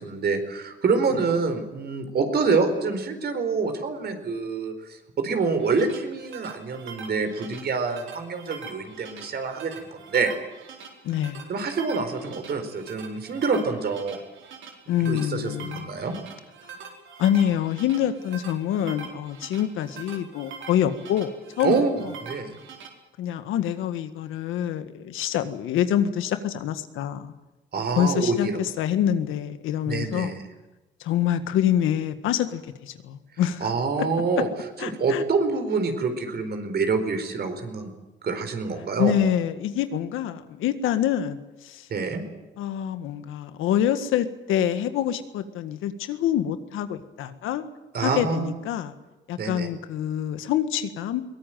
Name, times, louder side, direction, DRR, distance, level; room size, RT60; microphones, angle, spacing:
voice 1, 0.0-10.3 11.5-14.2 15.1-16.1 21.6-22.5 27.7-28.6 29.8-30.4 33.6-34.5 34.8-37.9 38.2-39.1 41.9-42.2 47.9-48.5 49.4-49.7, right 4 dB, 55° right, 8 dB, 4.4 m, -26 dB
sound 1, 5.4-22.9, right 6 dB, 75° right, 4.5 m, -43 dB
voice 2, 11.0-11.4 14.9-15.9 17.2-21.8 22.0-22.1 23.2-27.3 27.9-30.3 31.0-33.7 34.8-35.2 39.0-41.9 42.6-47.6 48.0-48.9 49.3-51.2, left 10 dB, 90° left, 10 dB, 1.7 m, -26 dB
22.0 x 18.5 x 9.2 m, 1.1 s
cardioid pair, 90°, 20 cm